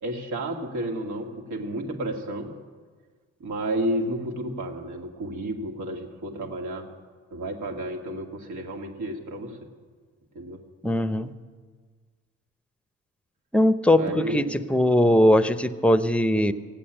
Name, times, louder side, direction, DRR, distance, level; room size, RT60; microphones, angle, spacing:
voice 1, 0.0-2.5 3.4-6.9 7.3-9.7 10.3-10.6 14.0-14.5, right 1 dB, 75° right, 2 dB, 2.2 m, -31 dB
voice 2, 10.8-11.3 13.5-16.5, left 1 dB, 5° left, 12 dB, 0.7 m, -20 dB
16.0 x 8.5 x 8.8 m, 1.5 s
cardioid pair, 90°, 30 cm